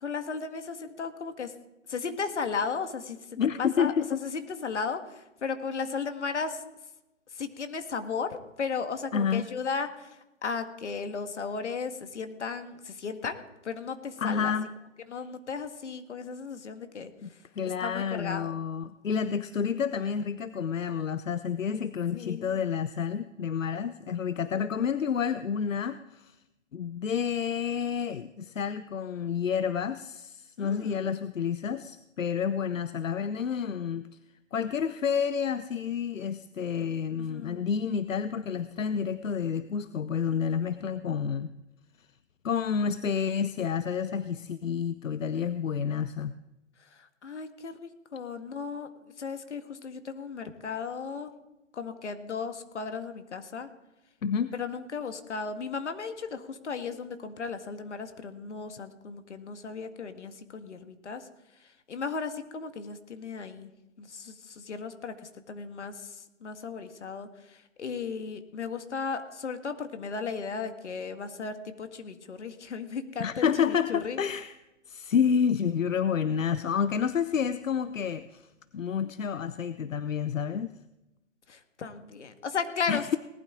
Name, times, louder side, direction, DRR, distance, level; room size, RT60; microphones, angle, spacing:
voice 1, 0.0-1.5 1.9-3.2 3.6-3.9 4.2-5.0 5.4-6.6 7.4-10.1 10.4-14.5 15.1-17.1 17.8-18.5 22.1-22.6 30.6-31.0 37.3-37.6 47.2-48.9 49.2-51.3 51.7-53.7 54.5-61.2 61.9-63.7 64.0-65.1 65.5-65.9 66.4-67.3 67.8-73.5 73.9-74.2 81.5-83.2, left 5 dB, 65° left, 8 dB, 1.8 m, -35 dB
voice 2, 3.4-4.2 9.1-9.5 14.2-14.7 17.2-26.4 26.7-34.1 34.5-41.5 42.4-46.3 54.2-54.6 73.2-74.6 74.9-78.5 78.7-80.7 82.9-83.2, left 7 dB, 85° left, 14 dB, 0.7 m, -29 dB
19.0 x 12.0 x 3.7 m, 0.94 s
hypercardioid pair, 150°, 38 cm